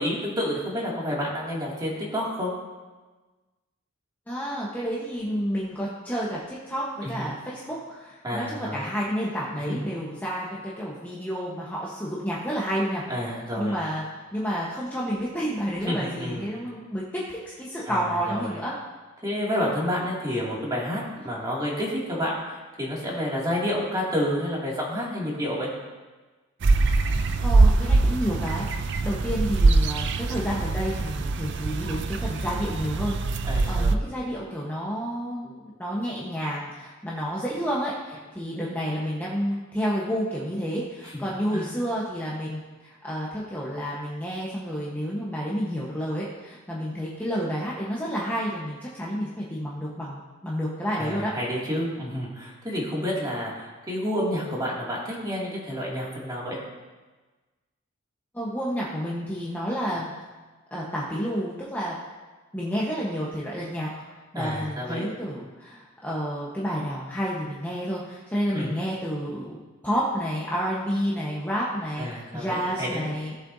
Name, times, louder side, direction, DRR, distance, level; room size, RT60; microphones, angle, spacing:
voice 1, 0.0-2.5 7.0-7.3 8.2-8.8 9.7-9.8 13.1-13.7 15.9-16.5 17.9-18.5 19.2-25.7 33.4-34.0 41.1-41.2 41.5-41.7 51.0-56.6 64.3-65.0 68.5-68.7 72.0-73.0, equal, 20° right, -5 dB, 2.4 m, -29 dB
voice 2, 4.3-13.0 13.6-18.7 27.4-51.3 58.3-60.1 60.7-62.0 62.5-63.9 64.3-73.3, equal, 10° left, -7 dB, 1.1 m, -30 dB
sound 1, 26.6-34.0, right 3 dB, 55° right, 0.5 m, -23 dB
17.0 x 7.6 x 2.7 m, 1.3 s
head